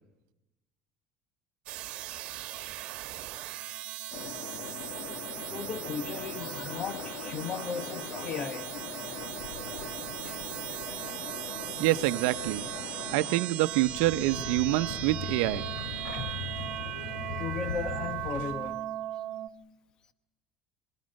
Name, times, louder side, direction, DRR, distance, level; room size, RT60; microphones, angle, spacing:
sound 1, 1.7-19.5, right 14 dB, 50° right, 1.4 m, -38 dB
sound 2, 4.1-13.4, left 5 dB, 60° left, 2.2 m, -41 dB
voice 1, 5.4-8.7 10.2-10.4 11.0-11.2 16.1-16.2 17.4-18.8, left 6 dB, 35° left, 1.2 m, -37 dB
voice 2, 11.8-12.7 13.1-15.7, right 17 dB, 85° right, 0.8 m, -26 dB
sound 3, 13.7-18.7, left 4 dB, 80° left, 2.5 m, -39 dB
28.5 x 22.0 x 6.5 m
cardioid pair, 160°, 2 cm